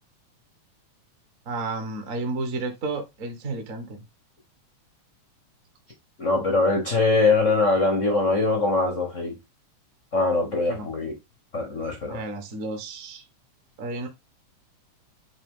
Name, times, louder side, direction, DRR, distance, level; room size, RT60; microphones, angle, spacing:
voice 1, 1.5-4.0 10.7-10.9 12.1-13.2 13.8-14.1, right 3 dB, 45° right, 1.1 m, -32 dB
voice 2, 6.2-9.3 10.1-11.2 11.5-12.2, left 3 dB, 55° left, 0.8 m, -22 dB
8.3 x 3.2 x 3.7 m
omnidirectional pair, 3.4 m